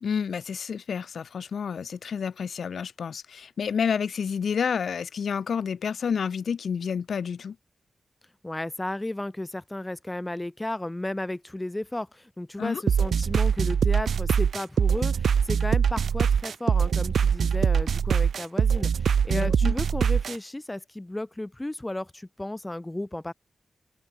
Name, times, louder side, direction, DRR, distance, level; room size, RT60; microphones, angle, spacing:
voice 1, 0.0-7.6 12.6-12.8 19.3-19.7, left 6 dB, 80° left, 1.0 m, -29 dB
voice 2, 8.4-23.3, left 1 dB, 15° left, 1.2 m, -34 dB
sound 1, 12.9-20.4, right 7 dB, 90° right, 0.8 m, -23 dB
open air
wide cardioid pair, 105°, 0 cm